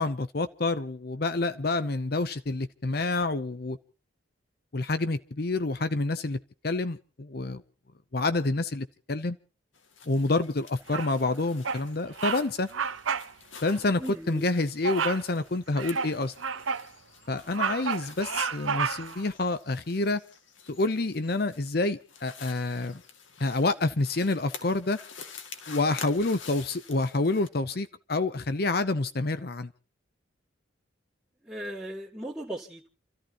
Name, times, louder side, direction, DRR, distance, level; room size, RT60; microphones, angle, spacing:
voice 1, 0.0-3.8 4.7-7.6 8.1-9.4 10.1-12.7 13.6-16.3 17.3-20.2 20.7-23.0 23.4-25.0 25.7-29.7, left 2 dB, 50° left, 12 dB, 0.7 m, -28 dB
sound 1, 9.7-27.5, left 6 dB, 75° left, 2.3 m, -49 dB
Bird vocalization bird call bird song, 10.9-11.3 11.6-11.9 12.2-12.4 12.7-13.3 13.6-13.8 14.8-15.3 15.8-16.9 17.3-19.2, right 6 dB, 85° right, 0.9 m, -31 dB
voice 2, 14.0-14.5 18.0-18.2 31.4-32.9, right 1 dB, 5° right, -8 dB, 2.1 m, -38 dB
29.5 x 14.0 x 3.0 m, 0.35 s
head